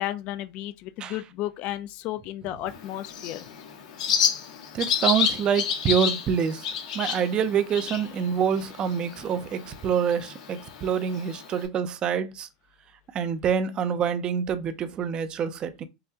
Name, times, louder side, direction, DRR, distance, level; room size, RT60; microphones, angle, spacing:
voice 1, 0.0-3.5, left 14 dB, 40° left, 0.4 m, -33 dB
Bird, 2.7-11.6, left 7 dB, 85° left, 1.4 m, -30 dB
voice 2, 4.7-6.7 6.9-12.5 13.1-15.9, right 7 dB, 25° right, 0.5 m, -26 dB
5.6 x 2.2 x 2.7 m
supercardioid pair, 150°, 4 cm